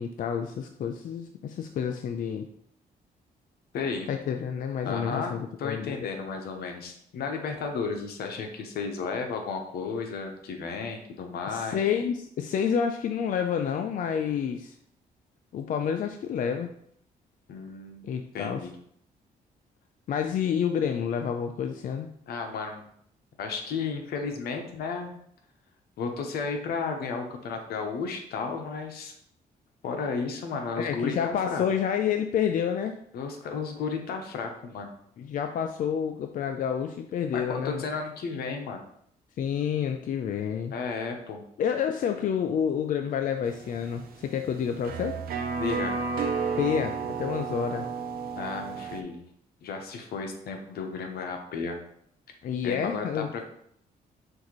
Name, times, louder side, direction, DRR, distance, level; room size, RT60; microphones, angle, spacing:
voice 1, 0.0-2.5 4.1-6.1 11.5-14.7 15.5-16.7 18.0-18.6 20.1-22.1 30.8-32.9 35.2-37.8 39.4-40.7 41.6-45.2 46.6-47.9 52.4-53.3, left 8 dB, 55° left, 5 dB, 0.4 m, -29 dB
voice 2, 3.7-4.1 4.8-5.3 5.6-11.8 17.5-18.1 18.3-18.8 22.3-22.9 23.4-25.1 26.0-29.1 29.8-31.7 33.1-34.9 37.3-38.8 40.7-41.4 45.6-46.0 48.4-49.2 49.6-51.8 52.6-53.5, left 5 dB, 80° left, 4 dB, 0.8 m, -33 dB
sound 1, 43.5-49.0, right 5 dB, 70° right, 0.5 m, -32 dB
6.2 x 2.6 x 3.0 m, 0.68 s
cardioid pair, 90°, 16 cm